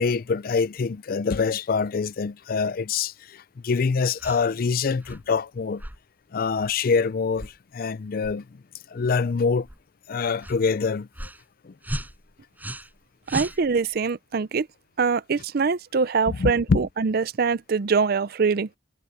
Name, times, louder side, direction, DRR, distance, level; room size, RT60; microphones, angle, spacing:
voice 1, 0.0-5.8 6.3-8.6 8.9-9.7 10.1-11.3 11.6-11.7 16.3-16.9, left 5 dB, 55° left, 0.4 m, -25 dB
sound 1, 4.2-4.5 5.0-5.3 5.8-6.0 6.6-6.8 7.3-7.6 8.2-8.4 9.0-9.2 9.6-9.8 10.4-10.6 11.1-11.4 11.8-13.0 13.3-14.0, right 1 dB, 10° right, 6.1 m, -36 dB
voice 2, 13.3-14.7 15.0-18.7, right 5 dB, 55° right, 0.5 m, -23 dB
head